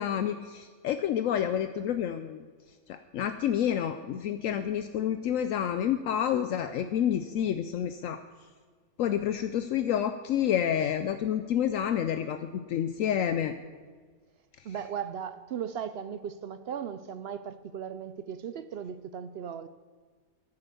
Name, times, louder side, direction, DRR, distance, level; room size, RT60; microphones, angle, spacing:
voice 1, 0.0-2.4 2.9-8.2 9.0-13.5, left 9 dB, 75° left, 10 dB, 0.9 m, -29 dB
voice 2, 14.6-19.7, right 8 dB, 65° right, 12 dB, 0.6 m, -37 dB
10.5 x 9.8 x 6.7 m, 1.5 s
omnidirectional pair, 1.5 m